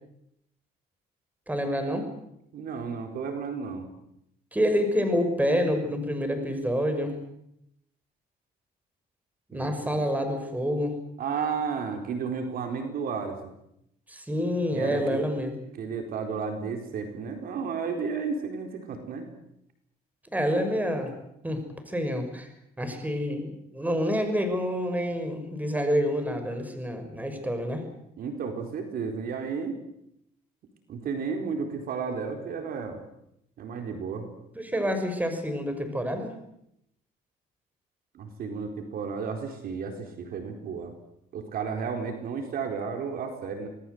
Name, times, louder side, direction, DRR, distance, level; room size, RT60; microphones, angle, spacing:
voice 1, 1.5-2.1 4.5-7.2 9.5-11.0 14.1-15.6 20.3-21.1 21.4-22.5 22.8-27.8 34.6-36.3, equal, 10° right, 7 dB, 5.9 m, -28 dB
voice 2, 2.5-3.9 9.5-10.0 11.2-13.4 14.7-15.2 15.8-19.3 28.2-29.8 30.9-33.0 33.6-34.3 38.1-40.9 41.3-43.7, right 5 dB, 60° right, 4 dB, 4.3 m, -32 dB
26.0 x 19.5 x 8.0 m, 0.78 s
cardioid pair, 110°, 17 cm